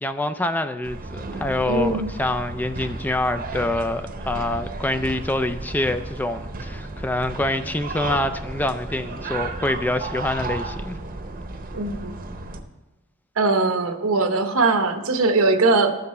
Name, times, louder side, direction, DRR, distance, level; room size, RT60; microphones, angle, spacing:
voice 1, 0.0-11.0, left 1 dB, 10° left, 10 dB, 0.3 m, -26 dB
sound 1, 0.8-12.6, right 2 dB, 45° right, 0.8 m, -33 dB
voice 2, 1.7-2.1 11.7-12.2 13.4-15.9, right 3 dB, 85° right, 7 dB, 1.0 m, -20 dB
13.0 x 6.7 x 4.1 m, 1.0 s
head